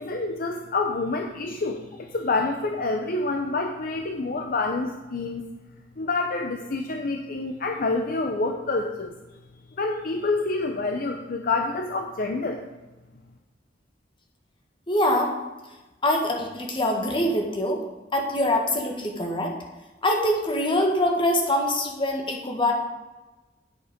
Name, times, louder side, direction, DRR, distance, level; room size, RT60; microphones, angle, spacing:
voice 1, 0.0-5.4 6.0-9.1 9.8-12.6, left 3 dB, 50° left, 4 dB, 0.7 m, -27 dB
voice 2, 14.9-15.3 16.0-17.8 18.1-19.5 20.0-22.7, left 1 dB, 25° left, 1 dB, 1.6 m, -24 dB
9.6 x 8.2 x 5.1 m, 1.1 s
head